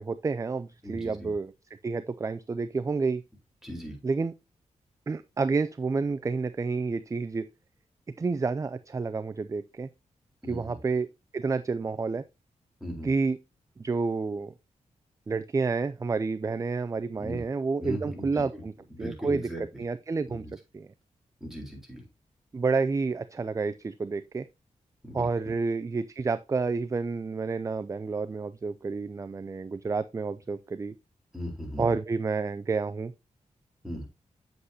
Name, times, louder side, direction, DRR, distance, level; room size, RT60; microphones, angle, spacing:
voice 1, 0.0-1.5 1.8-3.2 4.0-4.3 5.1-7.5 8.2-9.9 10.5-11.1 11.3-12.2 13.0-13.4 13.8-14.5 15.3-18.7 19.0-20.4 20.7-20.9 22.5-24.5 25.1-30.9 31.8-33.1, right 4 dB, 25° right, 0.4 m, -29 dB
voice 2, 0.8-1.3 3.6-4.0 10.4-10.8 12.8-13.1 17.2-17.4 17.8-18.6 18.9-19.6 20.3-20.5 21.4-22.0 25.0-25.3 31.3-32.0 33.8-34.1, equal, 5° right, 3.9 m, -38 dB
8.1 x 7.8 x 2.8 m
wide cardioid pair, 105°, 13 cm